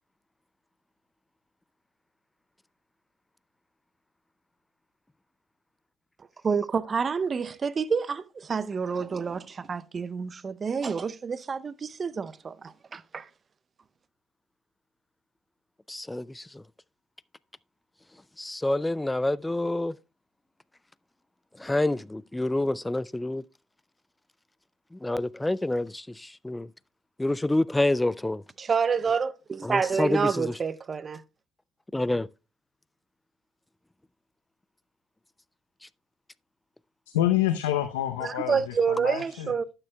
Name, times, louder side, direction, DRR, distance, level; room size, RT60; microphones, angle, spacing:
voice 1, 6.4-13.3 28.6-31.2 38.2-39.6, right 5 dB, 35° right, 0.6 m, -28 dB
voice 2, 15.9-16.6 18.4-19.9 21.6-23.4 24.9-26.7 27.2-28.4 29.6-30.5 31.9-32.3, left 1 dB, 10° left, 0.3 m, -28 dB
voice 3, 37.1-39.5, left 12 dB, 85° left, 0.7 m, -27 dB
12.0 x 8.9 x 2.2 m
hypercardioid pair, 60°, 0 cm